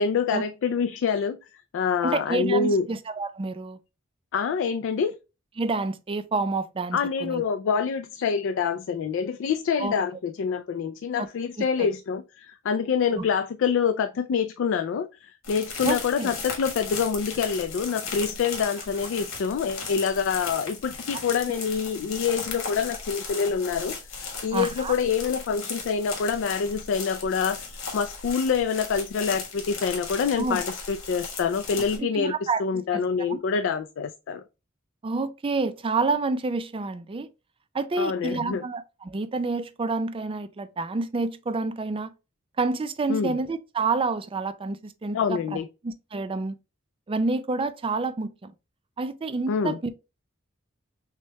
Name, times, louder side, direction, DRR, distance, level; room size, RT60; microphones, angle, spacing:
voice 1, 0.0-1.4 1.7-2.8 4.3-5.1 6.9-24.0 24.4-34.4 38.0-38.6 43.1-43.4 45.1-45.7 49.5-49.8, left 6 dB, 65° left, 0.3 m, -26 dB
voice 2, 2.0-3.8 5.6-7.4 9.8-9.9 11.2-11.3 11.8-11.9 13.2-13.3 15.8-16.3 21.5-21.6 24.5-24.9 30.4-30.6 32.0-33.0 33.3-33.4 35.0-37.3 37.7-42.1 42.6-46.6 47.1-48.5 49.0-49.9, right 3 dB, 25° right, 0.4 m, -28 dB
sound 1, 15.4-32.0, left 4 dB, 85° left, 1.5 m, -36 dB
6.2 x 2.2 x 2.7 m
head